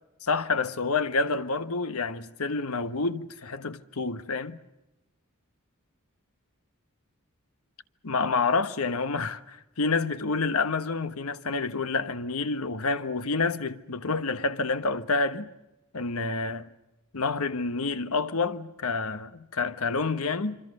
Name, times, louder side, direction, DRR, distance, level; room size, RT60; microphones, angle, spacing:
voice 1, 0.2-4.6 8.0-15.5 15.9-16.7 17.1-20.6, left 4 dB, 85° left, 1.2 m, -28 dB
25.5 x 25.5 x 6.6 m
head